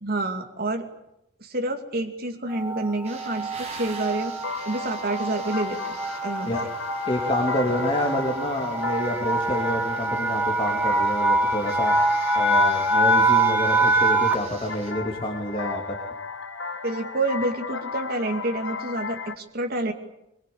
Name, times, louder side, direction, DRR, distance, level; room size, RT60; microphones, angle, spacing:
voice 1, 0.0-0.9 1.4-4.3 4.7-6.0 6.2-6.5 16.8-19.9, right 2 dB, 50° right, 4 dB, 2.6 m, -28 dB
sound 1, 2.5-14.6, right 1 dB, 10° right, 2.5 m, -24 dB
sound 2, 3.0-14.9, right 3 dB, 30° right, 6.3 m, -46 dB
sound 3, 3.6-19.4, left 4 dB, 70° left, 1.6 m, -36 dB
voice 2, 7.1-11.9 12.3-15.8, equal, 25° left, 2 dB, 3.2 m, -28 dB
23.0 x 23.0 x 8.8 m, 0.83 s
head